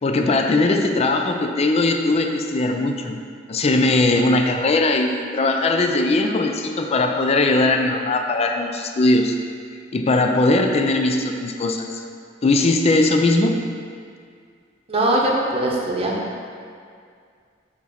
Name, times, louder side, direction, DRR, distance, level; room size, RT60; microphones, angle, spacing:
voice 1, 0.0-3.2 3.5-9.3 9.9-12.0 12.4-13.6, left 2 dB, 35° left, 4 dB, 0.4 m, -19 dB
voice 2, 14.9-16.2, right 1 dB, 30° right, -3 dB, 0.8 m, -21 dB
5.9 x 3.1 x 5.7 m, 2.2 s
head